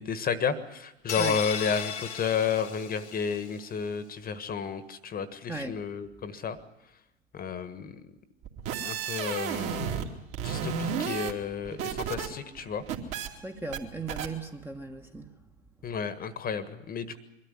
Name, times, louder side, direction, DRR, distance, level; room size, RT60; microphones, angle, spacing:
voice 1, 0.0-6.6 7.3-8.0 8.8-10.0 10.4-12.8 15.8-17.2, left 6 dB, 25° left, 1.5 m, -32 dB
sound 1, 1.1-3.6, left 7 dB, 80° left, 1.1 m, -36 dB
voice 2, 5.5-5.8 11.7-11.8 13.4-15.3, right 3 dB, 5° right, 1.3 m, -37 dB
sound 2, 8.4-10.1 10.3-12.3 12.6-13.3 13.7-13.8 14.1-14.3, right 7 dB, 45° right, 2.7 m, -32 dB
22.5 x 13.0 x 9.8 m
figure-of-eight pair, 90°, 34 cm